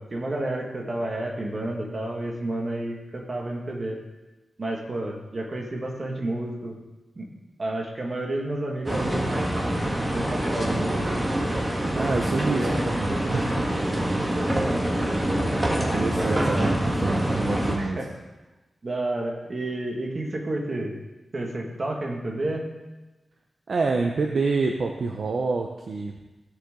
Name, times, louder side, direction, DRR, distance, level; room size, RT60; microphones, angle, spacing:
voice 1, 0.0-4.0 4.6-6.8 7.2-7.3 7.6-9.3 10.1-11.0 12.5-12.8 16.3-16.7 17.8-18.1 18.8-20.9 21.3-22.7, right 1 dB, 35° right, -1 dB, 1.8 m, -30 dB
sound 1, 8.9-17.8, right 1 dB, 15° right, 1.5 m, -25 dB
voice 2, 11.9-13.7 15.8-16.7 17.0-18.0 23.7-26.1, right 3 dB, 55° right, 2 dB, 0.7 m, -27 dB
16.0 x 6.6 x 3.8 m, 1.1 s
wide cardioid pair, 170°, 0 cm